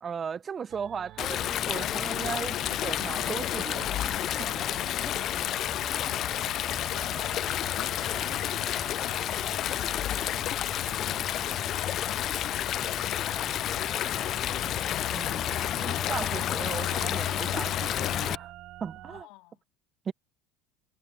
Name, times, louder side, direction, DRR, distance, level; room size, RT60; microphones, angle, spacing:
voice 1, 0.0-4.5 5.0-5.1 15.1-18.5 18.8-19.3 20.1-20.2, right 7 dB, 30° right, 0.8 m, -37 dB
sound 1, 0.7-19.2, right 16 dB, 55° right, 5.0 m, -47 dB
Stream, 1.2-18.3, left 12 dB, 50° left, 0.4 m, -30 dB
Alarm, 2.9-11.8, right 10 dB, 85° right, 2.1 m, -59 dB
voice 2, 5.3-14.4 18.9-19.6, left 22 dB, 65° left, 2.8 m, -53 dB
hypercardioid pair, 90°, 0 cm